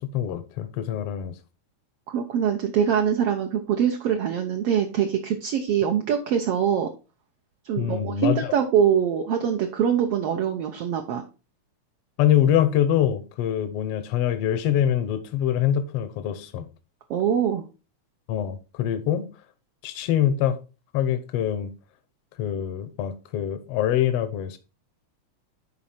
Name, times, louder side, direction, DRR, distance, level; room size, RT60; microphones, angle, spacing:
voice 1, 0.0-1.3 7.8-8.5 12.2-16.7 18.3-19.3 19.8-20.6 20.9-21.7 22.4-24.6, left 10 dB, 65° left, 1.6 m, -24 dB
voice 2, 2.1-6.9 7.6-11.2 17.1-17.6, right 8 dB, 65° right, 1.6 m, -23 dB
10.5 x 4.2 x 4.3 m
omnidirectional pair, 3.4 m